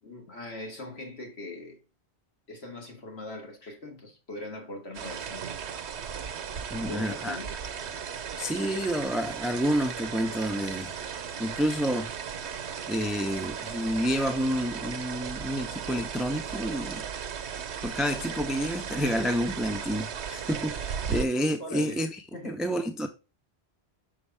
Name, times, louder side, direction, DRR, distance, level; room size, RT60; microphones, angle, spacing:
voice 1, 0.0-1.8 2.5-5.6 6.7-7.6 21.6-22.6, left 2 dB, 75° left, 1.9 m, -41 dB
sound 1, 4.9-21.2, right 7 dB, 85° right, 1.0 m, -36 dB
voice 2, 6.7-7.4 8.4-10.9 11.4-12.1 12.9-17.0 17.8-23.1, equal, ahead, 0.4 m, -29 dB
6.3 x 4.6 x 3.3 m
omnidirectional pair, 1.1 m